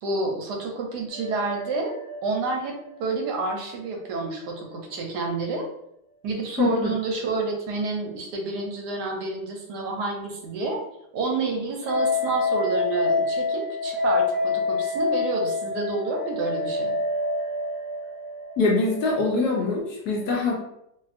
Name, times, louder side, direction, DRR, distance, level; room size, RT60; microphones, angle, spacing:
voice 1, 0.0-1.9 2.2-5.7 6.2-10.8 11.1-16.9, right 3 dB, 70° right, 1 dB, 1.1 m, -29 dB
sound 1, 1.1-4.3 4.5-4.6 11.8-19.8, left 3 dB, 15° left, 0.7 m, -28 dB
voice 2, 6.6-6.9 18.6-20.6, left 3 dB, 70° left, -1 dB, 1.0 m, -23 dB
2.8 x 2.7 x 2.4 m, 0.79 s
omnidirectional pair, 1.9 m